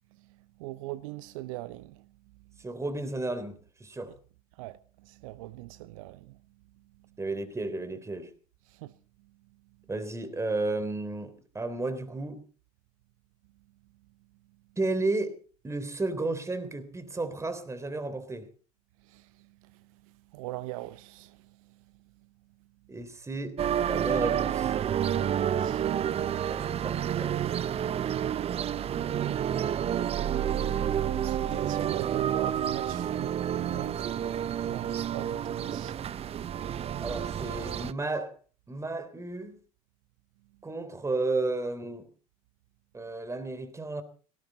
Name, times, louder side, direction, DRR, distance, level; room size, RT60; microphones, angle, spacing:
voice 1, 0.1-2.1 4.1-4.2 4.5-6.4 8.7-8.9 19.0-21.9 25.1-25.9 31.2-34.1 34.7-36.0, right 18 dB, 65° right, 0.9 m, -42 dB
voice 2, 2.6-4.1 7.2-8.3 9.9-12.4 14.8-15.4 15.6-18.5 22.9-23.6 23.9-24.7 26.5-27.4 37.0-38.3 38.7-39.6 40.6-42.0 42.9-44.0, right 2 dB, 15° right, 3.6 m, -33 dB
sound 1, 23.6-37.9, right 9 dB, 35° right, 0.8 m, -29 dB
19.0 x 16.5 x 4.2 m
hypercardioid pair, 80°, 18 cm